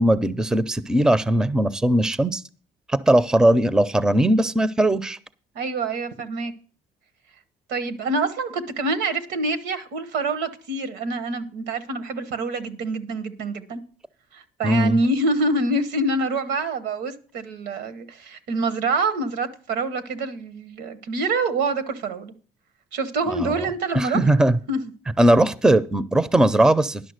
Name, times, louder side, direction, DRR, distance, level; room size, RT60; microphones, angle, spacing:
voice 1, 0.0-2.4 2.9-5.2 14.6-15.0 23.3-23.7 23.9-24.6 25.2-27.0, right 1 dB, 5° right, 0.4 m, -19 dB
voice 2, 5.5-6.5 7.7-13.8 14.3-22.3 22.9-24.2 24.7-24.8, right 2 dB, 85° right, 1.2 m, -26 dB
11.0 x 6.1 x 6.5 m
cardioid pair, 110°, 17 cm